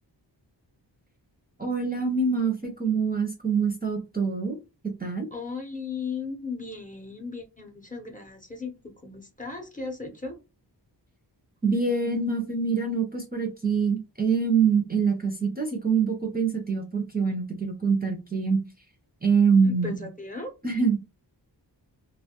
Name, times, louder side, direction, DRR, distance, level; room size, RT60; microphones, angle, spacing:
voice 1, 1.6-4.6 5.0-5.3 11.6-18.6 19.2-19.9 20.6-21.0, right 5 dB, 20° right, 2 dB, 0.5 m, -25 dB
voice 2, 5.3-10.4 19.6-20.5, left 4 dB, 20° left, 3 dB, 0.7 m, -36 dB
2.5 x 2.2 x 2.8 m, 0.27 s
wide cardioid pair, 80°, 44 cm